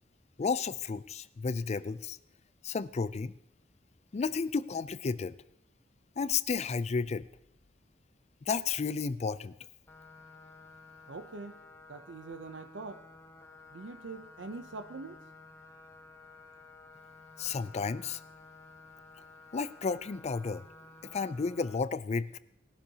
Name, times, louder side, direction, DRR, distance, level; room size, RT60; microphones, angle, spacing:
voice 1, 0.4-2.2 2.6-3.3 4.1-5.4 6.2-7.2 8.5-9.5 17.4-18.2 19.5-20.6 21.1-22.4, left 5 dB, 35° left, 16 dB, 0.4 m, -32 dB
sound 1, 9.9-21.8, left 3 dB, 15° left, 1.2 m, -53 dB
voice 2, 11.1-11.6 11.9-13.0 13.7-15.2, right 3 dB, 70° right, 10 dB, 0.6 m, -43 dB
19.5 x 11.5 x 2.8 m, 0.81 s
head